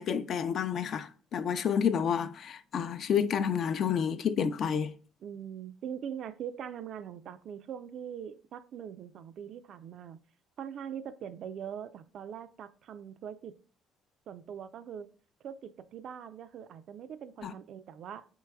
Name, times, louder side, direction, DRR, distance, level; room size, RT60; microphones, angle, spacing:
voice 1, 0.0-4.9 17.4-17.5, left 7 dB, 50° left, 0.4 m, -29 dB
voice 2, 5.2-10.2 10.6-13.5 14.3-15.1 15.4-18.3, right 8 dB, 55° right, 0.3 m, -42 dB
4.6 x 4.0 x 2.2 m
cardioid pair, 135°, 0 cm